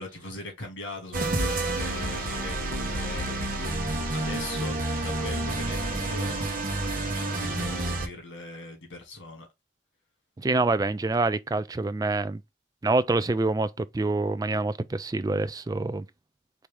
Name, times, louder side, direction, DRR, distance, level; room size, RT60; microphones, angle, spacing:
voice 1, 0.0-3.7 4.1-6.5 6.9-9.5, left 2 dB, 90° left, 2.1 m, -40 dB
sound 1, 1.1-8.1, right 2 dB, 50° right, 1.0 m, -29 dB
voice 2, 10.4-12.4 12.8-16.0, right 3 dB, 20° right, 0.3 m, -26 dB
4.6 x 2.8 x 3.4 m
head